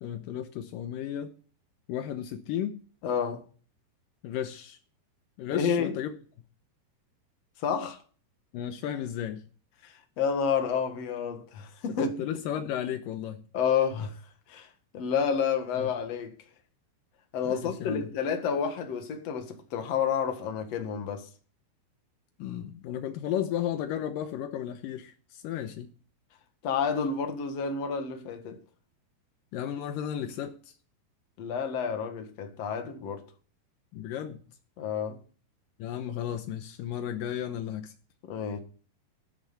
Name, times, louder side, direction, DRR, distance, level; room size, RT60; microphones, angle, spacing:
voice 1, 0.0-1.3 1.9-2.8 4.2-4.8 5.4-6.2 8.5-9.5 11.9-13.5 15.8-15.9 17.4-18.1 22.4-25.9 29.5-30.8 33.9-34.4 35.8-37.9, left 10 dB, 85° left, 1.9 m, -34 dB
voice 2, 3.0-3.4 5.5-5.9 7.6-8.0 9.8-12.1 13.5-14.1 14.5-14.7 14.9-16.3 17.3-21.3 26.6-28.6 31.4-33.2 34.8-35.2 38.2-38.6, left 6 dB, 55° left, 2.0 m, -29 dB
13.0 x 10.0 x 4.2 m
omnidirectional pair, 5.1 m